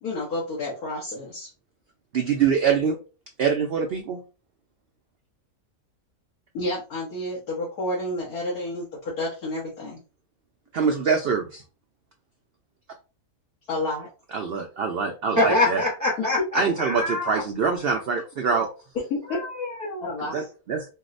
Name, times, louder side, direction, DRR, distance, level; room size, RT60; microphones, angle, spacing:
voice 1, 0.0-1.5 6.5-10.0 13.7-14.1 16.2-16.3 19.1-19.4 20.0-20.5, left 2 dB, 85° left, -6 dB, 1.6 m, -30 dB
voice 2, 2.1-3.0 3.4-4.2 10.7-11.6 14.3-15.8 16.5-18.7 20.3-20.9, right 6 dB, 75° right, 3 dB, 0.5 m, -24 dB
voice 3, 15.4-17.4 19.3-20.1, left 2 dB, 20° right, -2 dB, 0.4 m, -25 dB
4.6 x 2.1 x 2.5 m, 0.33 s
omnidirectional pair, 1.6 m